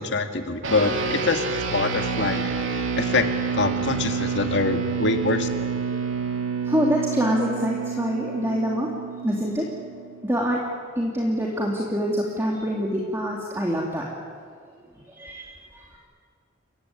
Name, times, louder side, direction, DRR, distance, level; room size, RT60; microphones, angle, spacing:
voice 1, 0.0-2.5 3.0-3.2 3.5-5.5, left 3 dB, 60° left, 6 dB, 2.0 m, -24 dB
sound 1, 0.6-10.3, right 5 dB, 70° right, 2.8 m, -28 dB
voice 2, 6.7-8.9 9.2-9.6 10.2-10.6 11.0-14.1 15.2-15.4, equal, 15° right, -2 dB, 2.6 m, -25 dB
28.5 x 16.0 x 9.6 m, 2.1 s
head